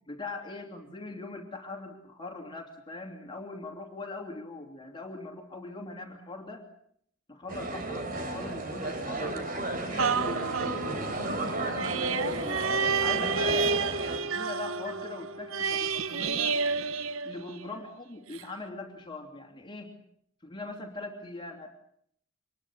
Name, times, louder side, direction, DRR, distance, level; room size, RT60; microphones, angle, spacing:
voice 1, 0.1-6.6 7.3-12.6 13.0-13.9 14.1-16.6 17.2-19.9 20.4-21.7, left 2 dB, 25° left, 2 dB, 3.0 m, -41 dB
sound 1, 7.5-14.2, right 2 dB, 40° right, 3.5 m, -33 dB
sound 2, 10.0-17.8 18.3-18.4, right 5 dB, 75° right, 0.9 m, -30 dB
25.5 x 21.5 x 7.3 m, 0.67 s
head